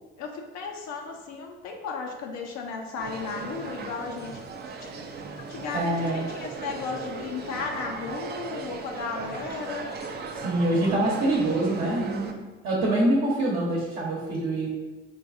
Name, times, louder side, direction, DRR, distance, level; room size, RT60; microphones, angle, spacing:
voice 1, 0.2-4.4 4.8-4.9 5.5-9.8, left 4 dB, 65° left, 2 dB, 0.5 m, -35 dB
sound 1, 3.0-12.3, right 4 dB, 35° right, 0.4 m, -37 dB
voice 2, 5.7-6.2 10.3-12.3 12.6-14.7, right 1 dB, 60° right, -6 dB, 0.9 m, -25 dB
3.9 x 2.3 x 2.6 m, 1.2 s
supercardioid pair, 65°, 29 cm